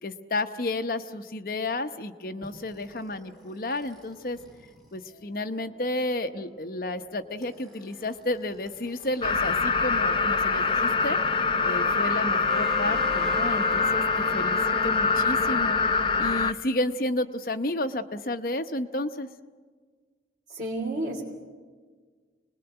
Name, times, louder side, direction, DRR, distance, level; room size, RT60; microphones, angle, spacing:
voice 1, 0.0-4.4 4.9-11.2 11.6-15.8 16.2-19.3, left 2 dB, 50° left, 7 dB, 1.0 m, -31 dB
sound 1, 2.4-9.6 9.9-16.3, left 1 dB, ahead, 3.6 m, -40 dB
sound 2, 9.2-16.5, left 4 dB, 30° left, 0.6 m, -24 dB
voice 2, 20.5-21.2, right 2 dB, 45° right, -2 dB, 3.0 m, -31 dB
26.0 x 20.0 x 8.0 m, 1.5 s
head